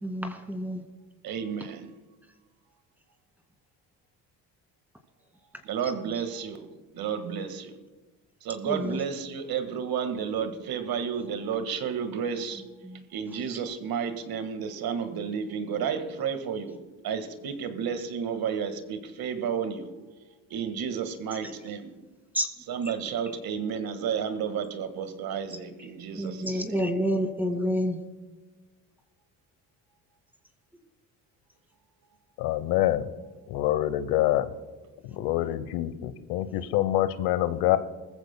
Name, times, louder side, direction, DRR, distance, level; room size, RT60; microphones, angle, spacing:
voice 1, 0.0-0.8 8.7-9.0 12.8-13.0 22.3-22.5 26.1-28.0, equal, 5° right, 2.3 m, -28 dB
voice 2, 1.2-1.9 5.6-6.7 6.9-7.8 8.4-12.6 13.1-19.9 20.5-22.0 22.7-26.9, right 7 dB, 65° right, 1.8 m, -32 dB
voice 3, 32.4-33.1 33.5-34.5 35.1-37.8, left 13 dB, 85° left, 1.0 m, -26 dB
20.5 x 15.0 x 2.3 m
supercardioid pair, 70°, 39 cm